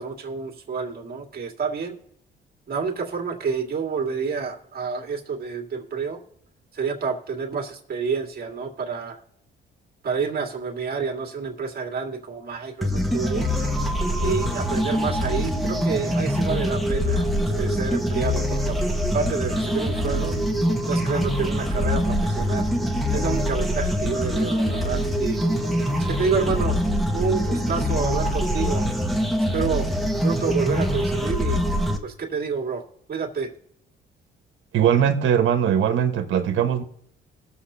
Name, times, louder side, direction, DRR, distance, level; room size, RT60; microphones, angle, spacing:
voice 1, 0.0-2.0 2.7-6.2 6.7-9.2 10.0-13.5 14.2-17.3 17.6-18.8 19.1-20.3 20.9-22.6 23.1-25.4 26.0-26.8 27.1-28.9 29.5-29.9 30.2-31.6 32.0-33.5, right 5 dB, 50° right, 2.2 m, -29 dB
sound 1, 12.8-32.0, equal, ahead, 1.6 m, -24 dB
voice 2, 34.7-36.8, right 9 dB, 75° right, 1.4 m, -20 dB
21.0 x 7.1 x 2.8 m
cardioid pair, 90°, 20 cm